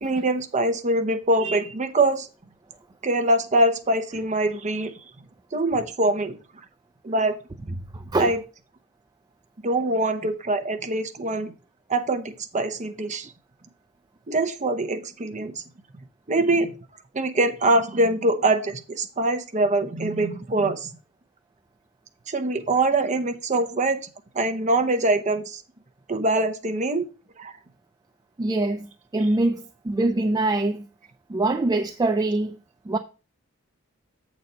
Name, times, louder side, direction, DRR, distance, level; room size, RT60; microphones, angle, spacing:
voice 1, 0.0-2.3 3.0-4.9 5.5-6.4 7.0-7.3 8.2-8.4 9.6-11.5 11.9-13.3 14.3-15.6 16.3-16.7 17.1-20.9 22.3-24.0 24.3-25.6 26.1-27.0 27.4-27.6, right 2 dB, 35° right, 0.8 m, -23 dB
voice 2, 7.9-8.3 28.4-30.9 31.3-32.6 32.9-33.0, right 2 dB, 20° right, 0.4 m, -24 dB
7.7 x 4.1 x 5.4 m
head